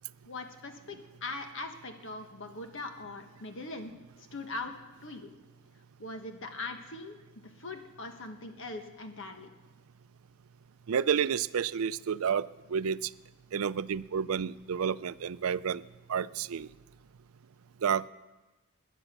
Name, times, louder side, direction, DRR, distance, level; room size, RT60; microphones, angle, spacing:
voice 1, 0.3-3.9 4.3-4.7 5.0-5.3 6.0-7.2 7.6-9.5, left 3 dB, 65° left, 5 dB, 1.4 m, -41 dB
voice 2, 10.9-13.0 13.5-15.8 16.1-16.7 17.8-18.1, right 7 dB, 80° right, 17 dB, 0.4 m, -30 dB
21.0 x 10.0 x 6.1 m, 1.2 s
head